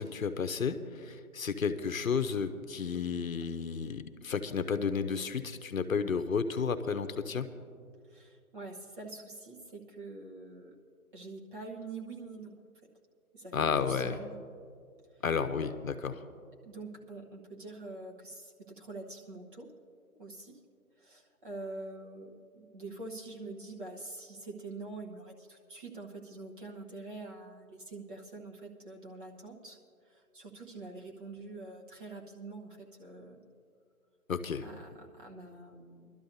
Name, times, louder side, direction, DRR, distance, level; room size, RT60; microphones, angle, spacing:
voice 1, 0.0-7.5 13.5-14.2 15.2-16.2 34.3-34.6, left 6 dB, 65° left, 10 dB, 0.7 m, -32 dB
voice 2, 8.1-10.7 11.1-12.6 13.3-14.4 16.6-19.7 20.1-20.6 21.0-29.8 30.1-33.4 34.6-36.1, right 3 dB, 35° right, -1 dB, 1.2 m, -45 dB
22.5 x 12.5 x 2.7 m, 2.3 s
figure-of-eight pair, 165°, 44 cm